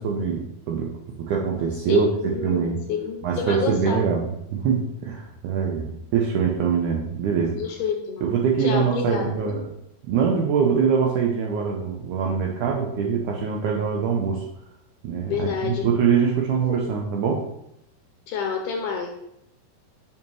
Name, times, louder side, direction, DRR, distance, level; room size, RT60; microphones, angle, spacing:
voice 1, 0.0-2.8 3.2-7.6 8.2-9.6 10.1-14.5 15.0-17.5, right 6 dB, 80° right, 0 dB, 1.8 m, -23 dB
voice 2, 1.9-4.0 7.6-8.2 8.6-9.6 15.3-15.9 18.3-19.1, left 6 dB, 75° left, 2 dB, 2.1 m, -28 dB
6.7 x 5.7 x 3.1 m, 0.79 s
omnidirectional pair, 4.2 m